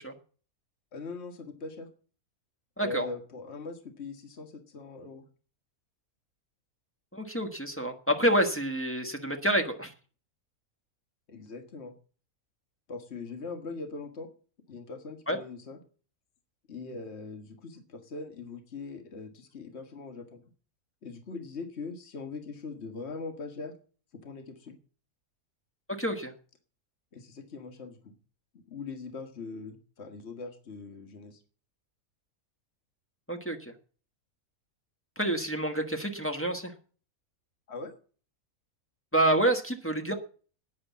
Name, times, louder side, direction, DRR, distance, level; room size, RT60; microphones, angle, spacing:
voice 1, 0.9-1.9 2.8-5.3 11.3-11.9 12.9-14.3 14.7-15.8 16.7-20.4 21.0-23.7 24.2-24.8 27.1-28.1 28.7-31.4 37.7-37.9, left 4 dB, 50° left, 6 dB, 1.9 m, -41 dB
voice 2, 2.8-3.1 7.1-9.9 15.3-15.4 26.0-26.3 33.3-33.7 35.2-36.7 39.1-40.1, right 1 dB, 10° left, 3 dB, 1.4 m, -28 dB
9.8 x 9.7 x 8.4 m, 0.41 s
omnidirectional pair, 1.5 m